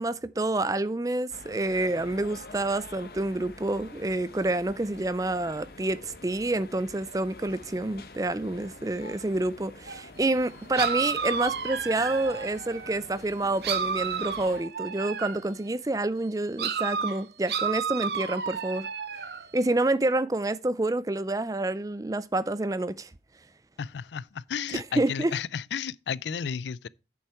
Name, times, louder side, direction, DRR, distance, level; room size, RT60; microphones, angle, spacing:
voice 1, 0.0-18.9 19.5-23.1 24.7-25.3, right 2 dB, 20° right, 0.4 m, -28 dB
sound 1, 1.3-14.6, left 3 dB, 60° left, 1.1 m, -46 dB
sound 2, 9.9-10.0 10.7-13.0 13.6-15.5 16.6-19.5, right 6 dB, 70° right, 1.0 m, -31 dB
voice 2, 23.8-26.9, left 7 dB, 85° left, 0.4 m, -33 dB
8.6 x 6.9 x 4.4 m
head